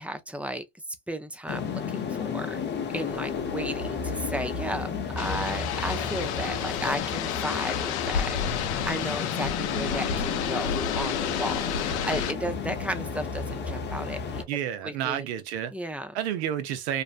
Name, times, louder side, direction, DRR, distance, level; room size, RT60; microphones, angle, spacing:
voice 1, 0.0-2.6 2.9-14.4 14.8-15.3 15.7-16.1, right 1 dB, 5° right, 0.4 m, -34 dB
sound 1, 1.5-14.4, left 6 dB, 35° left, 0.7 m, -32 dB
sound 2, 5.2-12.3, left 8 dB, 90° left, 0.5 m, -31 dB
voice 2, 14.5-15.7 16.1-17.0, right 10 dB, 85° right, 0.6 m, -30 dB
2.6 x 2.0 x 2.4 m
supercardioid pair, 90°, 33 cm